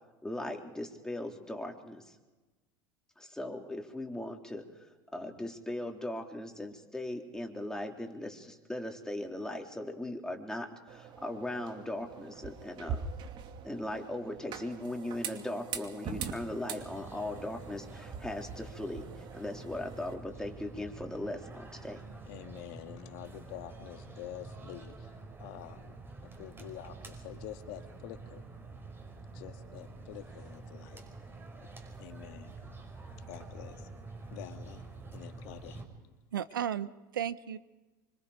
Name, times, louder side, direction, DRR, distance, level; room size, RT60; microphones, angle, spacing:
voice 1, 0.2-2.1 3.2-4.6 5.1-13.1 13.6-22.0, left 1 dB, 5° left, 2 dB, 3.7 m, -39 dB
sound 1, 10.9-20.1, right 6 dB, 50° right, 2.7 m, -43 dB
sound 2, 16.8-35.9, right 3 dB, 20° right, 5.6 m, -48 dB
voice 2, 22.3-26.0 26.2-28.4 29.3-31.0 32.0-32.6 33.3-33.9 34.3-34.8 35.1-35.8, left 12 dB, 65° left, 6 dB, 2.3 m, -47 dB
voice 3, 36.3-37.6, right 9 dB, 90° right, 15 dB, 0.9 m, -34 dB
26.0 x 25.0 x 5.2 m, 1.2 s
hypercardioid pair, 85°, 11 cm